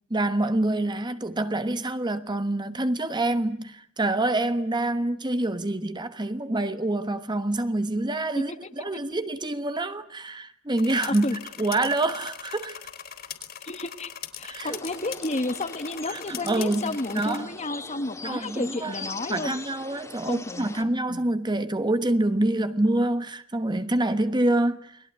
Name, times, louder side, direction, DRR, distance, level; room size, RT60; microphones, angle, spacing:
voice 1, 0.1-11.3 11.6-12.8 14.5-14.8 16.1-17.5 18.2-25.0, right 2 dB, 20° right, 1.3 m, -26 dB
sound 1, 10.8-17.4, left 9 dB, 45° left, 4.0 m, -40 dB
voice 2, 13.6-14.1 14.4-19.5 20.2-21.2, left 2 dB, 30° left, 1.6 m, -32 dB
sound 2, 14.6-20.8, left 3 dB, 15° left, 2.3 m, -42 dB
29.5 x 20.5 x 9.4 m
head